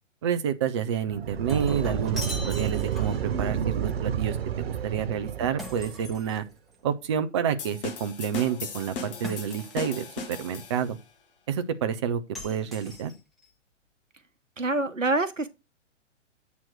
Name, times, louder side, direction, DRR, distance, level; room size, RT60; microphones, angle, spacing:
voice 1, 0.2-3.6 3.8-6.4 6.8-11.0 11.5-13.1, right 8 dB, 25° right, 0.4 m, -29 dB
sound 1, 1.1-6.3, right 8 dB, 55° right, 0.8 m, -30 dB
Shatter, 1.2-3.3 5.6-6.9 9.2-10.0 12.3-13.4, left 1 dB, ahead, 1.0 m, -41 dB
sound 2, 7.6-11.0, left 4 dB, 45° left, 1.6 m, -38 dB
voice 2, 14.6-15.5, right 2 dB, 85° right, 1.1 m, -26 dB
8.2 x 2.9 x 6.1 m
figure-of-eight pair, 120°, 37 cm